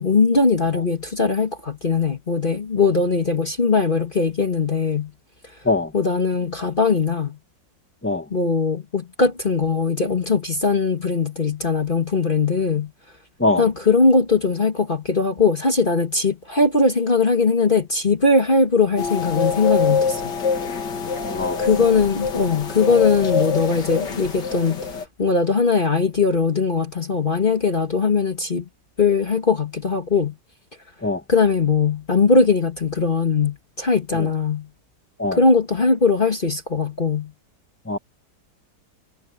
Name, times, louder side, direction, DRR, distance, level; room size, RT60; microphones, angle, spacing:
voice 1, 0.0-5.1 5.9-7.4 8.3-12.9 13.6-20.3 21.6-24.9 25.2-28.7 29.0-30.4 31.3-34.7 35.3-37.3, left 4 dB, 30° left, 1.8 m, -20 dB
voice 2, 5.6-5.9 8.0-8.2 13.4-13.6 21.3-21.6 31.0-31.2 34.2-34.3 35.2-35.4 37.9-38.0, left 2 dB, 10° left, 0.9 m, -22 dB
sound 1, 19.0-25.0, left 5 dB, 80° left, 2.6 m, -25 dB
omnidirectional pair, 1.9 m